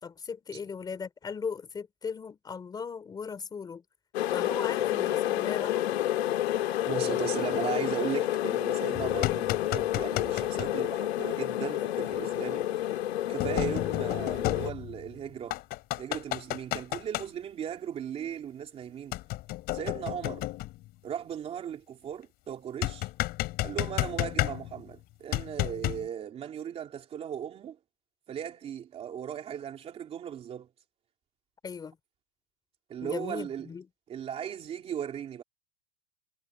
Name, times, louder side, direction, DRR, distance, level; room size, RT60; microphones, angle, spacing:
voice 1, 0.0-3.8 4.3-6.0 31.6-32.0 33.0-33.9, left 6 dB, 10° left, 3.6 m, -38 dB
Kenwood Kettle Boiling, 4.1-14.7, left 13 dB, 80° left, 2.2 m, -29 dB
voice 2, 6.9-12.9 13.3-15.6 16.0-19.2 19.7-20.4 21.0-23.1 23.6-27.8 28.3-30.7 32.9-33.7 34.1-35.4, right 9 dB, 20° right, 2.8 m, -37 dB
sound 1, 8.9-10.7 12.1-12.2 13.4-15.1 15.5-17.3 19.1-20.8 22.8-24.9 25.3-26.1, left 17 dB, 30° left, 4.0 m, -32 dB
supercardioid pair, 165°, 32 cm